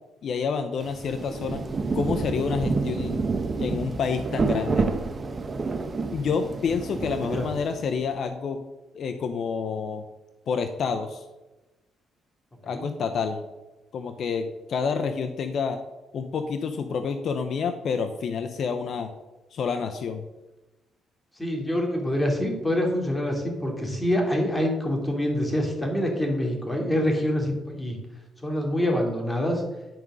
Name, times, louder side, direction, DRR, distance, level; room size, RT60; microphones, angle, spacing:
voice 1, 0.2-1.6 1.9-3.2 3.6-4.9 6.1-8.6 8.9-10.0 10.5-11.2 12.6-13.4 13.9-15.8 16.1-19.1 19.5-20.2, left 5 dB, 60° left, 7 dB, 0.8 m, -28 dB
Rain, 0.8-8.0, right 4 dB, 35° right, 1.0 m, -29 dB
voice 2, 21.4-28.0 28.4-29.6, left 1 dB, 15° left, 1 dB, 2.9 m, -26 dB
10.5 x 5.3 x 6.3 m, 1.1 s
cardioid pair, 90°, 0 cm